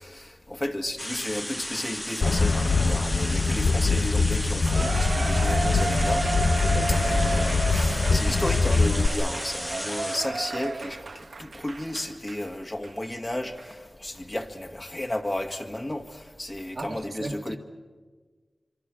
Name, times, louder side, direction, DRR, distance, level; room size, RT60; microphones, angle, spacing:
voice 1, 0.0-6.3 7.0-11.1 11.4-17.6, left 1 dB, 30° left, 2.0 m, -33 dB
sound 1, 1.0-10.2, left 1 dB, 15° left, 0.9 m, -34 dB
sound 2, 2.2-9.1, left 4 dB, 85° left, 0.9 m, -23 dB
Cheering, 4.7-12.4 12.8-12.9 13.6-13.7, right 3 dB, 85° right, 1.0 m, -32 dB
voice 2, 6.7-7.1 16.7-17.6, right 2 dB, 65° right, 1.7 m, -36 dB
25.0 x 25.0 x 6.3 m
wide cardioid pair, 55°, 0 cm